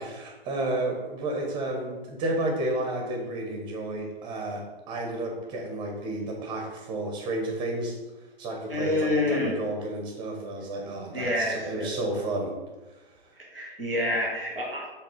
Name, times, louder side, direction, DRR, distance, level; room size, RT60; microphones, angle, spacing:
voice 1, 0.0-8.0 8.4-12.5, right 2 dB, 15° right, 1 dB, 1.1 m, -31 dB
voice 2, 8.7-9.5 11.1-11.9 13.4-14.9, left 1 dB, 5° left, -12 dB, 0.3 m, -28 dB
5.2 x 3.6 x 5.2 m, 1.1 s
figure-of-eight pair, 125°, 31 cm